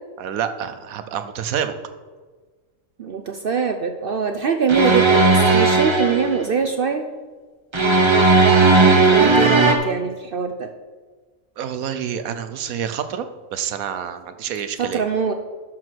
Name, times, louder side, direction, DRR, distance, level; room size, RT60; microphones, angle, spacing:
voice 1, 0.2-1.7 11.6-13.3 13.5-15.0, right 8 dB, 80° right, 10 dB, 1.2 m, -27 dB
voice 2, 3.0-7.0 9.1-10.7 14.8-15.3, right 5 dB, 55° right, 6 dB, 0.6 m, -23 dB
sound 1, 4.7-6.4 7.7-9.8, right 3 dB, 25° right, 0.7 m, -15 dB
12.0 x 4.7 x 6.1 m, 1.4 s
omnidirectional pair, 1.5 m